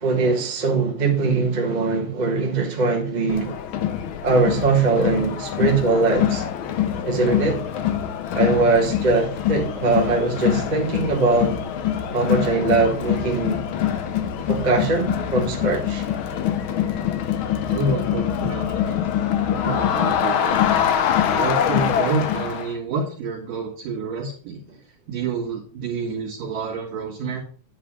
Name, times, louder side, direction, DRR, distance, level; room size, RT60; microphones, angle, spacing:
voice 1, 0.0-3.5 4.2-6.4 7.0-7.6 8.3-11.6 12.1-13.6 14.5-16.0, right 3 dB, 30° right, 0.8 m, -21 dB
Crowd, 3.3-22.7, left 9 dB, 80° left, 1.1 m, -24 dB
voice 2, 17.7-19.0 19.5-20.6 21.3-24.6 25.1-27.4, right 3 dB, 65° right, 3.2 m, -28 dB
9.4 x 5.0 x 4.9 m
omnidirectional pair, 3.3 m